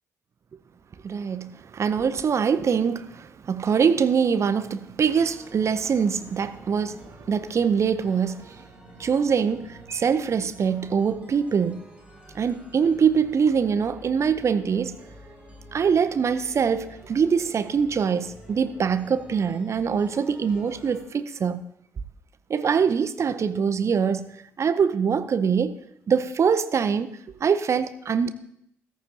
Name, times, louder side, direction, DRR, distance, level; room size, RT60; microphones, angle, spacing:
voice 1, 1.0-8.6 9.0-11.8 12.3-15.0 15.7-21.6 22.5-24.3 24.6-25.8 26.1-27.1 27.4-28.3, right 6 dB, 40° right, 0.7 m, -23 dB
sound 1, 5.0-21.0, right 1 dB, 15° right, 3.8 m, -48 dB
14.0 x 14.0 x 2.9 m
figure-of-eight pair, 45°, 8 cm